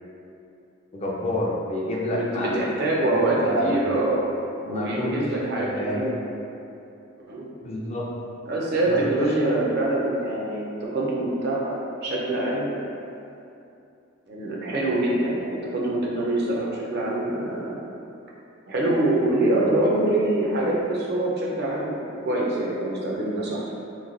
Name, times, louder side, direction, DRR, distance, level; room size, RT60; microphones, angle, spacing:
voice 1, 0.9-2.7 3.0-3.8 4.6-5.3 5.6-6.0 7.6-8.1 8.9-9.7, left 1 dB, 30° left, -4 dB, 0.4 m, -29 dB
voice 2, 2.1-4.3 4.7-6.1 7.3-7.5 8.5-11.7 12.0-12.7 14.3-17.7 18.7-23.6, right 1 dB, 50° right, -4 dB, 0.6 m, -25 dB
3.0 x 2.2 x 3.8 m, 2.7 s
head